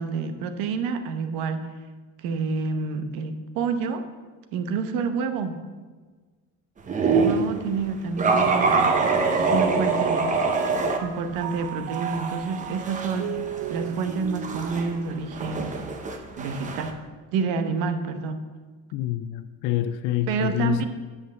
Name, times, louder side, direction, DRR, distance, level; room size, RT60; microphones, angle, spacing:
voice 1, 0.0-1.6 2.2-4.1 4.5-5.6 7.0-9.0 9.3-10.3 11.0-13.3 13.7-15.9 16.4-17.0 17.3-18.4 20.3-20.9, right 5 dB, 85° right, 1.0 m, -28 dB
sound 1, 6.9-7.5 8.2-11.0 11.4-16.9, right 4 dB, 25° right, 0.8 m, -25 dB
Mallet percussion, 9.3-10.2 10.5-16.0, right 11 dB, 60° right, 0.5 m, -37 dB
voice 2, 18.9-20.8, left 12 dB, 65° left, 0.5 m, -27 dB
8.3 x 5.5 x 7.1 m
cardioid pair, 155°, 33 cm